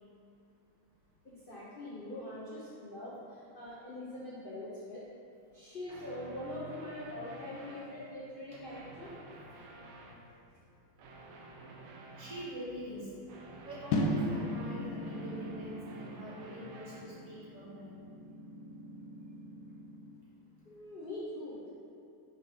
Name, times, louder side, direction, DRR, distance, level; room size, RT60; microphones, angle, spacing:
voice 1, 1.2-5.0 5.5-9.1 20.6-21.7, left 1 dB, 90° left, -9 dB, 0.4 m, -43 dB
sound 1, 5.9-7.9 8.6-10.2 11.0-12.5 13.3-17.0, right 2 dB, 80° right, 1.6 m, -51 dB
voice 2, 11.8-13.2 13.5-18.0, right 1 dB, 40° right, -9 dB, 1.9 m, -45 dB
sound 2, 13.9-20.1, left 1 dB, 65° left, 1.0 m, -38 dB
6.0 x 3.8 x 5.1 m, 2.8 s
omnidirectional pair, 2.3 m